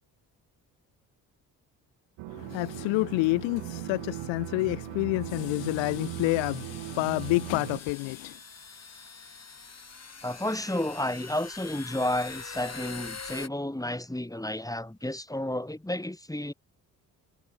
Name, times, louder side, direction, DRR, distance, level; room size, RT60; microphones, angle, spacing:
sound 1, 2.2-7.8, right 21 dB, 65° right, 2.3 m, -39 dB
voice 1, 2.3-8.4, left 25 dB, 65° left, 1.3 m, -28 dB
sound 2, 2.5-2.9 3.8-3.9 5.0-5.1 5.9-13.5, left 5 dB, 30° left, 7.3 m, -44 dB
voice 2, 10.2-16.5, left 1 dB, 5° left, 5.9 m, -31 dB
figure-of-eight pair, 40°, 48 cm